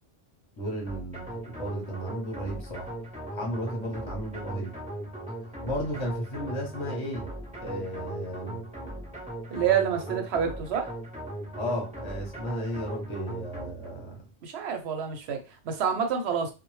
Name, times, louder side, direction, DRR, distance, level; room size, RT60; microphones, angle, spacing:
voice 1, 0.6-2.9 3.3-4.7 5.6-7.3 7.6-8.6 11.5-14.2, equal, 30° left, 0.7 m, -34 dB
sound 1, 0.9-14.1, right 1 dB, 10° right, 0.5 m, -39 dB
voice 2, 9.5-10.9 14.4-16.5, right 7 dB, 65° right, 0.8 m, -28 dB
2.1 x 2.0 x 3.1 m
omnidirectional pair, 1.2 m